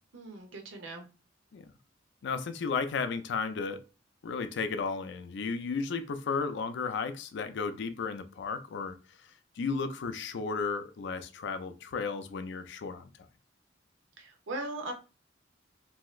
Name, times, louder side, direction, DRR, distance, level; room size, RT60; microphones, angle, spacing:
voice 1, 0.1-1.0 14.2-14.9, right 2 dB, 90° right, 0.7 m, -39 dB
voice 2, 2.2-3.8 4.2-9.0 9.6-13.1, left 5 dB, 65° left, 0.4 m, -34 dB
2.7 x 2.3 x 3.1 m
head